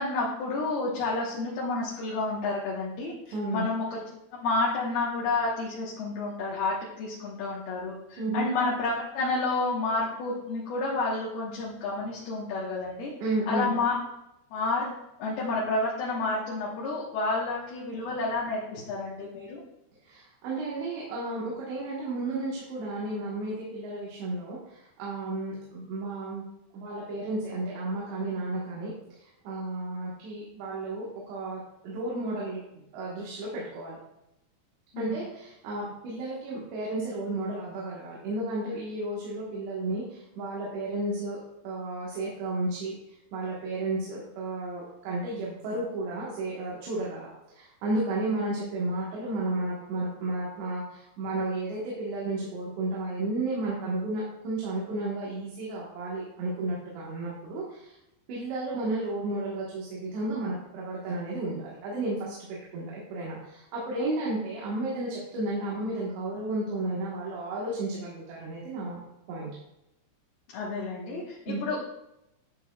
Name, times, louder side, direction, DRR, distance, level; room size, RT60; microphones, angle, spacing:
voice 1, 0.0-4.0 4.3-13.1 13.5-13.9 14.5-14.9 15.2-19.6 34.9-35.1 70.5-71.8, left 3 dB, 70° left, -5 dB, 3.0 m, -30 dB
voice 2, 3.3-3.7 8.2-8.5 13.2-13.7 20.0-26.4 26.7-32.6 32.9-34.0 35.0-41.4 41.6-43.0 43.3-58.0 58.3-69.0 69.3-69.5 71.5-71.6, right 2 dB, 90° right, -5 dB, 3.7 m, -33 dB
11.0 x 7.0 x 2.3 m, 0.88 s
omnidirectional pair, 4.9 m